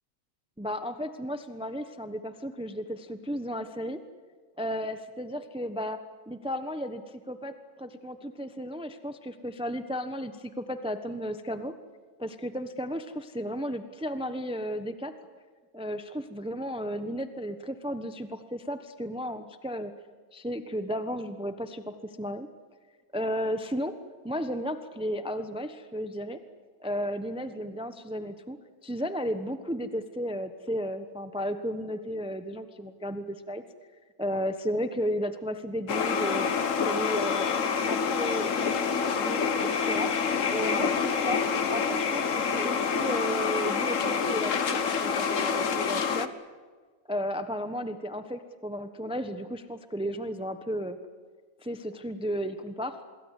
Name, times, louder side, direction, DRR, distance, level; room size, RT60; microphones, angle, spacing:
voice 1, 0.6-4.0 4.6-6.0 6.3-11.7 12.2-15.1 15.7-19.9 20.3-22.5 23.1-23.9 24.2-26.4 26.8-28.6 28.8-33.6 34.2-36.5 36.8-37.5 37.9-40.1 40.5-41.4 41.7-46.3 47.1-51.0 51.6-53.0, equal, 5° right, 9 dB, 1.0 m, -34 dB
sound 1, 35.9-46.3, left 6 dB, 60° left, 1.5 m, -27 dB
26.0 x 22.5 x 8.3 m, 1.5 s
omnidirectional pair, 1.5 m